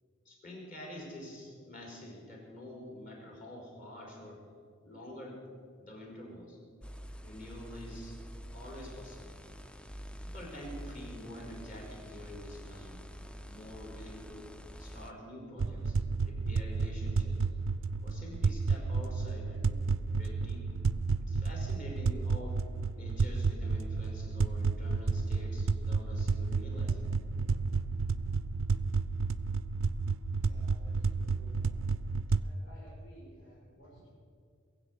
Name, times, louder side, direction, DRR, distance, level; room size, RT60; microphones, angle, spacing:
voice 1, 0.2-4.4 4.8-5.4 5.8-6.6 7.2-8.2 8.5-9.4 10.2-13.0 13.4-14.5 14.8-16.0 16.2-17.4 18.0-19.8 20.1-20.8 21.2-22.6 22.9-27.1, left 1 dB, 40° left, -1 dB, 4.5 m, -47 dB
sound 1, 6.8-15.1, equal, 5° left, 0.4 m, -47 dB
sound 2, 15.6-32.4, right 4 dB, 80° right, 0.5 m, -31 dB
voice 2, 30.4-31.8 32.4-34.1, right 1 dB, 85° left, -7 dB, 4.8 m, -57 dB
21.5 x 7.9 x 8.1 m, 2.2 s
head